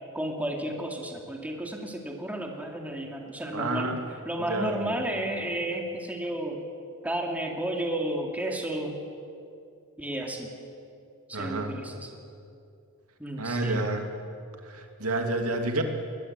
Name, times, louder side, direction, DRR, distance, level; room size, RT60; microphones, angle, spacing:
voice 1, 0.1-3.9 4.3-6.6 7.0-9.0 10.0-10.5 11.3-12.1 13.2-13.9, right 1 dB, 5° right, 1 dB, 2.6 m, -32 dB
voice 2, 3.5-4.1 4.5-5.0 11.3-11.7 13.4-14.1 14.6-15.8, right 2 dB, 85° right, 4 dB, 2.5 m, -29 dB
22.0 x 20.5 x 8.3 m, 2.5 s
head